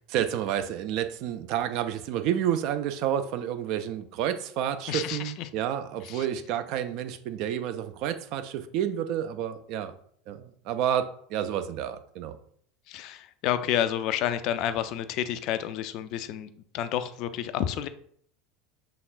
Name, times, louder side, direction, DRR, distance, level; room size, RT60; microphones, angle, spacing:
voice 1, 0.1-10.0 10.3-12.4, right 10 dB, 50° right, 9 dB, 0.4 m, -30 dB
voice 2, 4.9-5.5 6.0-6.3 12.9-17.9, left 10 dB, 50° left, 11 dB, 0.3 m, -30 dB
5.9 x 3.4 x 2.4 m, 0.63 s
figure-of-eight pair, 75°, 0 cm